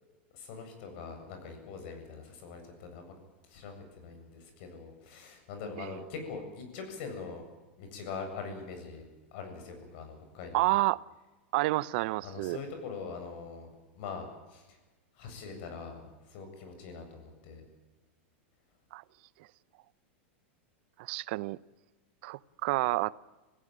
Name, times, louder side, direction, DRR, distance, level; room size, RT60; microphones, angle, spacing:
voice 1, 0.0-3.1 3.5-7.4 7.8-9.0 9.3-10.8 12.2-13.7 13.9-14.8 15.1-17.6, left 5 dB, 60° left, 6 dB, 7.7 m, -43 dB
voice 2, 10.5-11.0 11.5-12.6 18.9-19.0 21.0-21.6 22.2-23.1, right 20 dB, 60° right, 21 dB, 0.7 m, -29 dB
25.5 x 16.0 x 8.9 m, 1.2 s
supercardioid pair, 130°, 6 cm